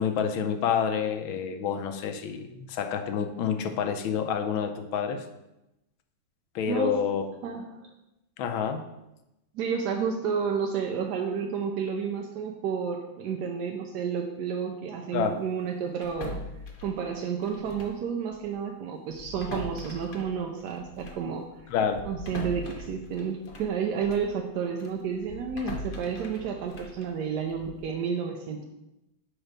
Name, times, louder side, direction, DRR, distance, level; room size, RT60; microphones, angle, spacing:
voice 1, 0.0-5.2 6.5-7.2 8.4-8.8 15.1-15.4 21.7-22.0, left 7 dB, 85° left, 6 dB, 1.5 m, -28 dB
voice 2, 6.7-7.0 7.4-7.6 9.5-16.4 16.8-21.5 22.0-28.6, right 6 dB, 70° right, 2 dB, 1.0 m, -31 dB
sound 1, 16.0-18.1 18.3-18.5 19.1-24.4 24.8-27.9, left 2 dB, 60° left, 0.5 m, -41 dB
6.5 x 4.5 x 5.1 m, 0.92 s
omnidirectional pair, 2.2 m